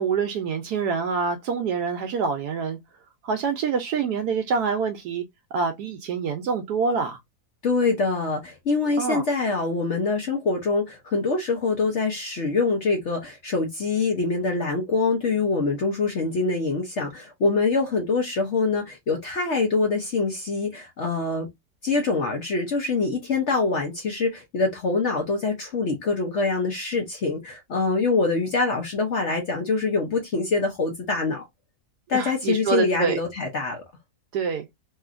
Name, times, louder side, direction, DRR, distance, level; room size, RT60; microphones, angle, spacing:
voice 1, 0.0-2.8 3.2-5.2 5.5-7.2 9.0-9.2 32.1-33.2 34.3-34.7, right 5 dB, 75° right, 1.1 m, -26 dB
voice 2, 7.6-21.5 21.8-31.4 32.1-33.8, left 3 dB, 55° left, 0.9 m, -24 dB
3.0 x 2.8 x 2.4 m
omnidirectional pair, 1.8 m